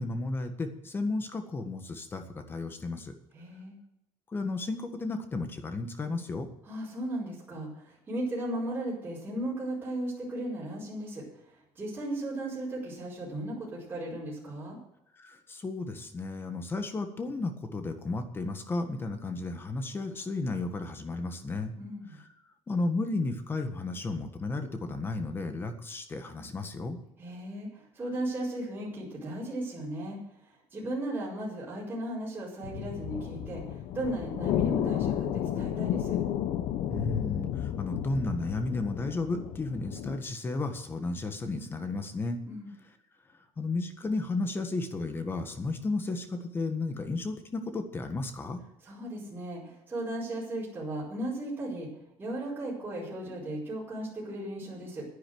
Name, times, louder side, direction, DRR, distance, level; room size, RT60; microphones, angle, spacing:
voice 1, 0.0-3.1 4.3-6.5 15.1-21.7 22.2-22.3 22.7-27.0 36.9-42.4 43.6-48.6, left 3 dB, 20° left, 7 dB, 1.6 m, -33 dB
voice 2, 3.3-3.7 6.7-14.8 21.8-22.2 27.2-36.2 42.5-42.7 48.8-51.9 52.2-55.1, right 1 dB, 15° right, -7 dB, 5.0 m, -36 dB
sound 1, 32.6-40.2, left 10 dB, 70° left, 1.0 m, -32 dB
10.5 x 10.5 x 7.9 m, 0.83 s
cardioid pair, 155°, 11 cm